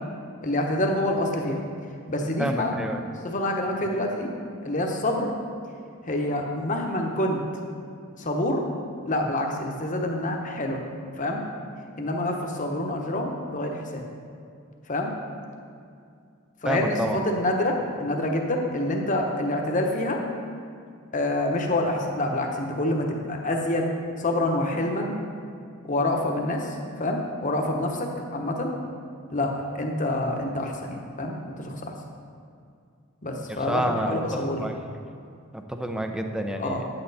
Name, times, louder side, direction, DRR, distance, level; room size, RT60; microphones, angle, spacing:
voice 1, 0.4-1.6 2.1-2.8 3.2-4.3 4.6-5.3 6.1-7.4 8.2-8.6 9.0-10.8 11.2-11.4 12.0-14.0 14.9-15.1 16.6-20.2 21.1-23.9 24.2-25.1 25.8-28.7 29.3-31.9 33.2-34.7 36.6-36.8, left 1 dB, 35° left, 2 dB, 1.0 m, -27 dB
voice 2, 2.4-3.0 3.8-4.0 16.6-17.2 33.5-34.8 35.5-36.9, right 1 dB, 5° right, 5 dB, 0.5 m, -29 dB
9.9 x 8.8 x 4.1 m, 2.4 s
head